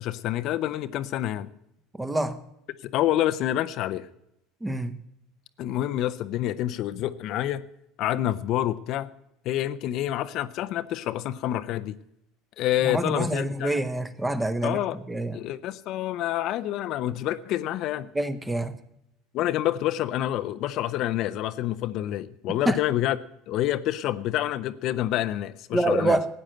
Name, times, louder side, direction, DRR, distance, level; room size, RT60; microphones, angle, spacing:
voice 1, 0.0-1.5 2.8-4.1 5.6-7.6 8.0-9.1 9.4-12.0 12.6-13.7 14.6-15.0 15.3-18.1 19.3-23.2 23.5-26.2, left 13 dB, 55° left, 12 dB, 0.6 m, -27 dB
voice 2, 2.0-2.4 4.6-5.0 12.8-14.8 15.1-15.4 18.1-18.7 22.7-22.8 25.7-26.3, right 1 dB, 10° right, 11 dB, 1.1 m, -26 dB
13.5 x 8.9 x 7.7 m, 0.80 s
supercardioid pair, 95°, 0 cm